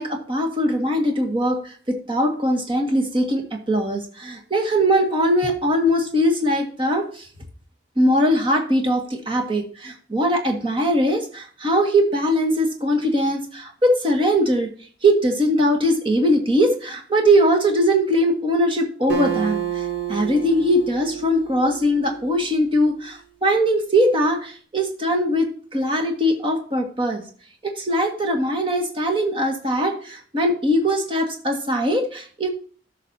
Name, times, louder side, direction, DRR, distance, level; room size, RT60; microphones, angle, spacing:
voice 1, 0.0-7.3 8.0-14.7 15.0-27.2 27.6-32.5, equal, 30° right, 3 dB, 1.6 m, -21 dB
Acoustic guitar, 19.1-22.7, right 8 dB, 80° right, 2.6 m, -29 dB
13.5 x 6.0 x 2.7 m, 0.43 s
head